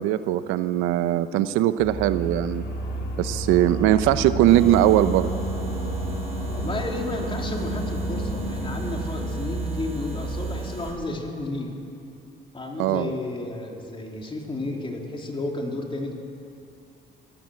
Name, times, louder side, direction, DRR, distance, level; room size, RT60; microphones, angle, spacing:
voice 1, 0.0-2.6 3.2-5.3 12.8-13.1, right 13 dB, 90° right, 12 dB, 0.8 m, -20 dB
sound 1, 1.8-10.6, right 1 dB, 55° left, 7.0 m, -30 dB
voice 2, 2.8-3.6 6.4-11.7 12.5-16.1, left 2 dB, 25° left, 1 dB, 3.3 m, -32 dB
sound 2, 4.5-10.9, right 4 dB, 30° right, 7.0 m, -42 dB
22.5 x 15.0 x 7.8 m, 2.6 s
cardioid pair, 95°, 20 cm